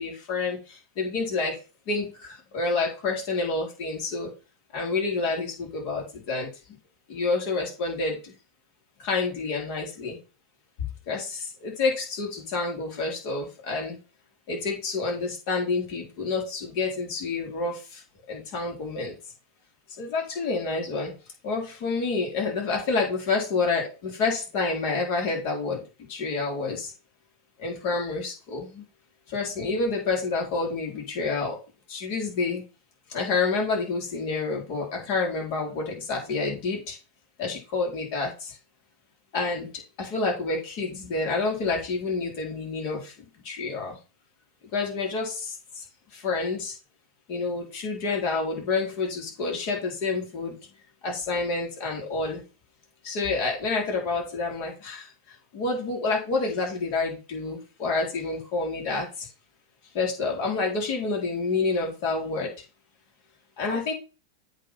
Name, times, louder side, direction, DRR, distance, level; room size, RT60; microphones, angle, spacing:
voice 1, 0.0-1.6 1.9-4.3 4.7-6.5 7.1-8.3 9.0-10.2 11.1-14.0 14.5-18.0 18.3-19.2 20.0-21.1 21.4-25.8 26.1-26.9 27.6-28.8 29.3-31.6 31.9-32.6 33.1-37.0 37.4-38.6 39.3-39.7 40.0-43.1 43.4-44.0 44.7-45.8 46.1-46.8 47.3-50.5 51.0-52.4 53.0-55.1 55.5-59.3 59.9-62.5 63.6-63.9, left 3 dB, 50° left, 0 dB, 3.8 m, -28 dB
8.2 x 3.8 x 5.9 m, 0.32 s
figure-of-eight pair, 95°, 0 cm